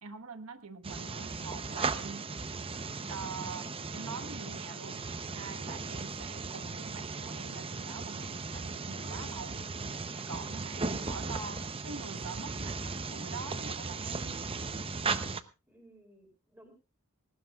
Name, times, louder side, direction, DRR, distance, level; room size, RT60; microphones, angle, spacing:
voice 1, 0.0-2.2 3.1-3.7 3.9-5.0 5.3-9.7 10.3-14.4, right 4 dB, 90° right, 9 dB, 1.3 m, -44 dB
sound 1, 0.8-15.4, right 4 dB, 25° right, 0.7 m, -37 dB
voice 2, 0.9-1.3 15.7-16.7, right 1 dB, 10° right, 4 dB, 5.0 m, -58 dB
20.0 x 18.0 x 2.4 m, 0.30 s
head